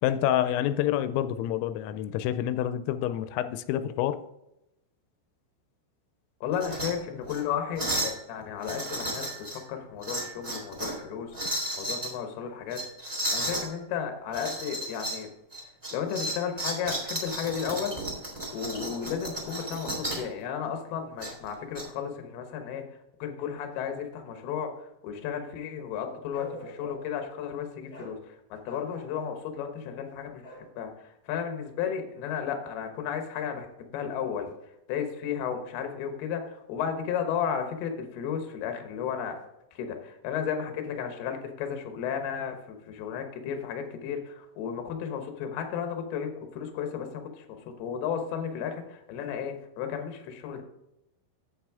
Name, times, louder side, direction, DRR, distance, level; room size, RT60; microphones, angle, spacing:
voice 1, 0.0-4.2, left 11 dB, 90° left, 11 dB, 3.2 m, -28 dB
voice 2, 6.4-11.4 11.7-15.3 15.9-18.0 18.5-22.9 23.2-33.7 33.9-34.5 34.9-39.4 39.7-50.6, left 8 dB, 70° left, 5 dB, 2.6 m, -34 dB
sound 1, 6.5-6.9 7.2-7.4 7.8-8.2 8.6-9.6 10.0-11.0 11.3-12.1 12.7-13.7 14.3-15.2 15.5-20.3 21.2-21.8, right 1 dB, 15° right, 1.3 m, -33 dB
Bark, 26.3-27.2 27.9-28.2 28.6-29.4 30.4-30.7, right 1 dB, 20° left, 2.0 m, -45 dB
8.8 x 7.4 x 3.5 m, 0.87 s
omnidirectional pair, 5.8 m